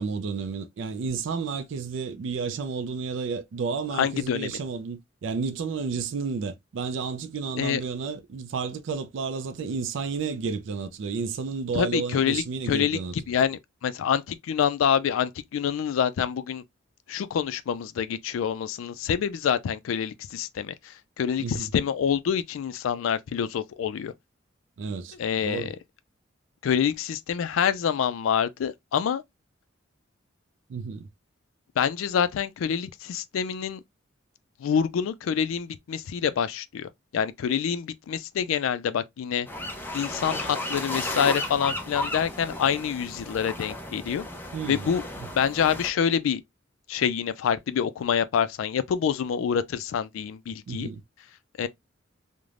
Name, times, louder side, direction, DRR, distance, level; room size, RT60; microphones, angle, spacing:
voice 1, 0.0-13.1 21.4-21.7 24.8-25.2 25.4-25.7 30.7-31.1 44.5-44.9 50.7-51.0, right 5 dB, 65° right, 0.4 m, -31 dB
voice 2, 3.9-4.5 7.6-7.8 11.7-13.0 13.3-16.6 17.1-24.1 25.2-25.7 26.6-29.2 31.8-33.8 34.6-39.5 39.9-44.2 44.7-45.0 45.3-46.4 46.9-50.9 51.6-51.7, left 8 dB, 85° left, 0.3 m, -26 dB
sound 1, 39.5-45.9, left 1 dB, 10° left, 0.6 m, -34 dB
3.2 x 2.1 x 2.4 m
head